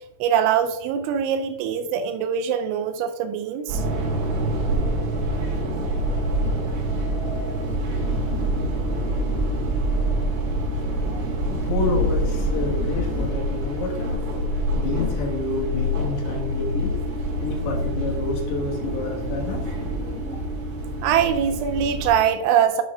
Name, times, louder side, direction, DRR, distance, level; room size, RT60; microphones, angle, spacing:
voice 1, 0.2-3.8 21.0-22.8, right 8 dB, 85° right, 7 dB, 2.8 m, -22 dB
sound 1, 3.7-22.1, right 1 dB, 60° right, 4.4 m, -26 dB
voice 2, 11.3-14.4 14.7-17.0 17.4-19.7, left 2 dB, 85° left, 0 dB, 4.2 m, -29 dB
9.3 x 8.8 x 2.3 m, 1.1 s
omnidirectional pair, 5.8 m